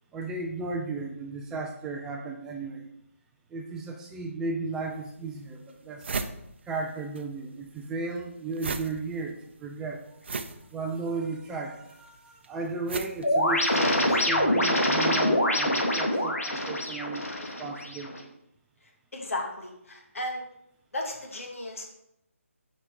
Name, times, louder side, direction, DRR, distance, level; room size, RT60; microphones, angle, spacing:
voice 1, 0.1-2.9 3.5-6.1 6.7-10.0 10.7-17.3 17.6-18.1, right 3 dB, 5° right, 1 dB, 0.4 m, -35 dB
sound 1, 4.8-4.9 5.4-5.5 5.7-7.3 7.5-14.1, right 4 dB, 50° right, 0.7 m, -37 dB
sound 2, 13.2-18.2, left 1 dB, 85° left, 2.1 m, -25 dB
voice 2, 19.1-20.4 20.9-21.8, left 1 dB, 70° left, 0 dB, 2.2 m, -34 dB
8.0 x 5.2 x 4.6 m, 0.79 s
figure-of-eight pair, 150°, 8 cm